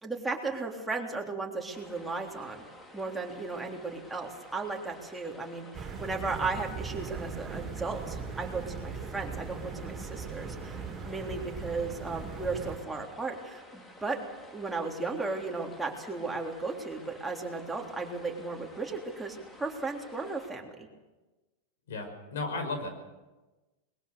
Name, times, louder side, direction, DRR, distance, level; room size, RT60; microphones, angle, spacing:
voice 1, 0.0-2.6 2.9-14.2 14.5-20.9, right 3 dB, 10° right, 0 dB, 3.5 m, -35 dB
sound 1, 1.7-20.5, left 1 dB, 20° left, 3.0 m, -52 dB
sound 2, 5.7-12.8, right 5 dB, 25° right, 3.4 m, -39 dB
voice 2, 21.9-22.9, left 3 dB, 80° left, 6 dB, 5.6 m, -34 dB
21.5 x 21.0 x 7.0 m, 1.2 s
hypercardioid pair, 120°, 0 cm